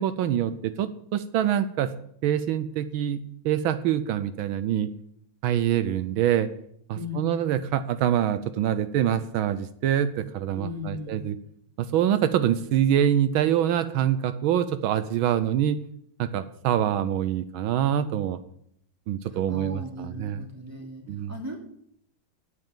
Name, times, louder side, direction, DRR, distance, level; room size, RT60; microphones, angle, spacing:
voice 1, 0.0-1.9 2.2-3.2 3.4-4.9 5.4-6.5 7.2-11.4 11.8-15.8 16.2-18.4 19.1-20.4 21.1-21.3, right 10 dB, 80° right, 12 dB, 1.5 m, -25 dB
voice 2, 6.9-7.4 10.5-11.3 19.3-21.6, left 2 dB, 5° right, 0 dB, 2.9 m, -37 dB
9.9 x 8.5 x 9.0 m, 0.69 s
omnidirectional pair, 2.2 m